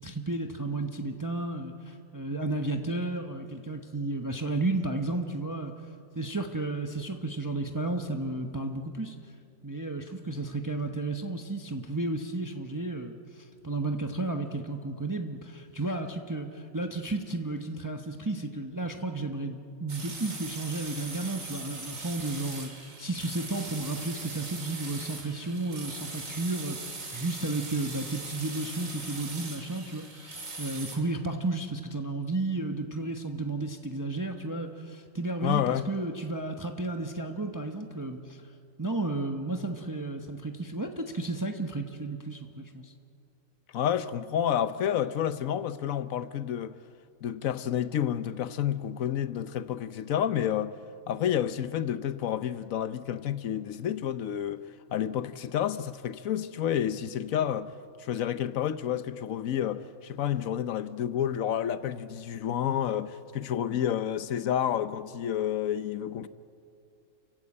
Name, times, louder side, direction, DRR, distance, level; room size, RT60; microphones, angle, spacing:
voice 1, 0.0-5.7 6.1-9.2 9.6-38.4 38.8-42.9, right 2 dB, 15° right, 1.0 m, -33 dB
sound 1, 19.9-31.0, right 3 dB, 75° right, 2.9 m, -40 dB
voice 2, 35.4-35.9 43.7-46.8 47.2-50.8 51.1-57.7 58.0-66.3, left 10 dB, 90° left, 1.2 m, -30 dB
29.0 x 15.5 x 8.7 m
omnidirectional pair, 1.4 m